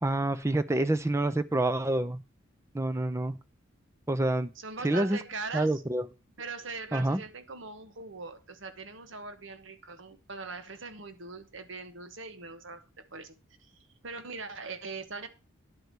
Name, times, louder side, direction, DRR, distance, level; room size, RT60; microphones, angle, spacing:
voice 1, 0.0-2.2 2.7-3.4 4.1-4.5 4.8-5.2 5.5-6.1 6.9-7.2, right 1 dB, 15° right, 0.5 m, -27 dB
voice 2, 4.6-5.7 6.4-12.8 13.1-13.3 13.6-13.7 14.0-15.3, right 4 dB, 60° right, 1.1 m, -41 dB
10.5 x 4.8 x 6.7 m
head